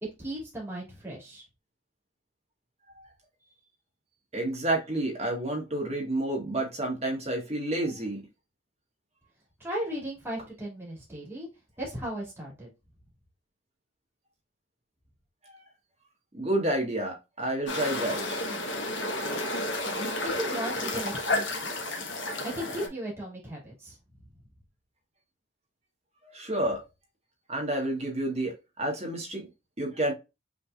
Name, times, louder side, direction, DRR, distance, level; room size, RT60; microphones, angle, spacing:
voice 1, 0.2-1.4 9.6-11.5 11.8-12.7 20.2-21.9 22.4-24.0, equal, 10° right, 2.3 m, -36 dB
voice 2, 4.3-8.2 15.5-15.6 16.3-18.4 26.2-26.8 27.5-29.5 29.8-30.1, right 1 dB, 35° right, 1.5 m, -30 dB
sound 1, 17.7-22.9, left 2 dB, 75° left, 1.3 m, -31 dB
5.9 x 3.5 x 2.4 m
head